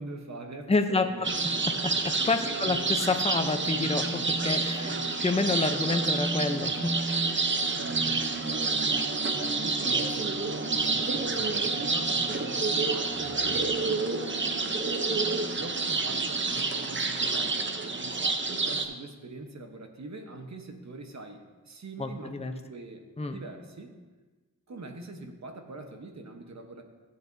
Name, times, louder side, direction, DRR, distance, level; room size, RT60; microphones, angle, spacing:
voice 1, 0.0-1.4 2.4-2.9 4.8-5.2 5.6-5.8 7.7-8.8 9.3-15.0 15.6-23.0 23.3-23.9 24.7-26.8, right 2 dB, 55° right, 4 dB, 1.0 m, -43 dB
voice 2, 0.7-4.9 5.2-7.0 22.0-22.5 23.2-23.4, left 3 dB, 20° left, 6 dB, 0.6 m, -29 dB
sound 1, 1.2-18.8, right 3 dB, 35° right, 0.7 m, -28 dB
15.0 x 8.1 x 2.6 m, 1.3 s
wide cardioid pair, 105°, 32 cm